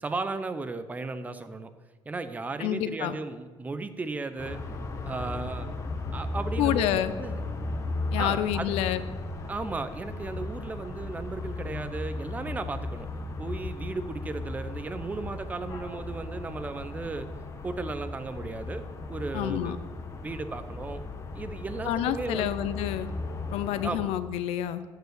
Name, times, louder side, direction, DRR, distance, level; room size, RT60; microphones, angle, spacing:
voice 1, 0.0-1.7 2.1-4.6 5.0-5.7 6.1-7.6 8.2-8.7 9.5-13.1 13.4-17.3 17.6-19.8 20.2-21.0 21.4-22.6 23.8-24.0, right 3 dB, 15° right, 11 dB, 0.6 m, -35 dB
voice 2, 2.6-3.1 6.6-7.1 8.1-9.0 19.3-19.8 21.8-23.1 23.5-24.8, left 12 dB, 85° left, 12 dB, 0.6 m, -28 dB
sound 1, 4.4-24.0, left 2 dB, 30° left, 1.0 m, -36 dB
13.0 x 4.8 x 8.0 m, 1.4 s
cardioid pair, 160°, 10 cm